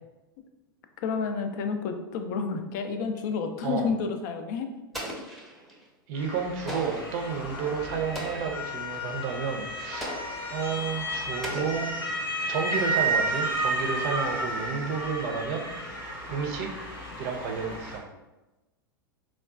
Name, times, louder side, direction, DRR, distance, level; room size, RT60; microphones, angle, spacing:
voice 1, 1.0-4.7, left 5 dB, 55° left, 6 dB, 0.4 m, -30 dB
Explosion, 4.9-5.8 6.7-7.2 8.1-8.7 10.0-10.5 11.4-12.3, equal, ahead, 0.6 m, -38 dB
voice 2, 6.1-10.1 10.5-11.9 12.5-15.6 16.3-16.7 17.2-18.1, right 6 dB, 50° right, 3 dB, 0.5 m, -31 dB
Motor vehicle (road) / Siren, 6.2-18.0, right 1 dB, 90° left, 0.8 m, -32 dB
3.6 x 2.3 x 2.3 m, 1.0 s
figure-of-eight pair, 90°, 12 cm